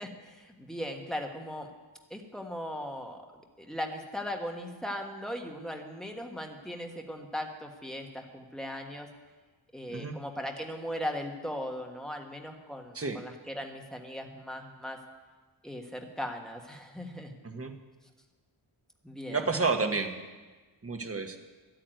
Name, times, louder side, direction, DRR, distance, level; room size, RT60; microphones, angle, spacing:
voice 1, 0.0-1.7 2.1-9.1 9.7-15.0 15.6-17.4 19.0-19.4, equal, ahead, 2 dB, 1.5 m, -38 dB
voice 2, 17.4-17.7 19.3-20.1 20.8-21.4, right 4 dB, 30° right, 5 dB, 1.1 m, -30 dB
12.5 x 9.0 x 9.1 m, 1.3 s
wide cardioid pair, 135°, 49 cm